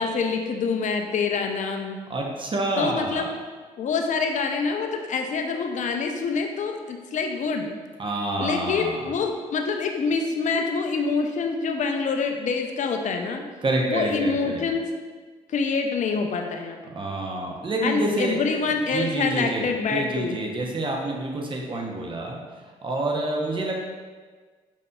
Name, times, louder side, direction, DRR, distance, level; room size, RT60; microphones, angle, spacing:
voice 1, 0.0-2.0 2.8-3.3 3.8-7.7 8.4-13.4 13.9-14.8 15.5-16.8 17.8-20.4, left 4 dB, 50° left, 4 dB, 0.5 m, -26 dB
voice 2, 2.1-3.3 8.0-9.1 13.6-14.7 16.9-18.4 18.9-22.4 22.8-23.8, right 2 dB, 30° right, 0 dB, 0.8 m, -28 dB
5.1 x 2.7 x 2.3 m, 1.5 s
hypercardioid pair, 50°, 16 cm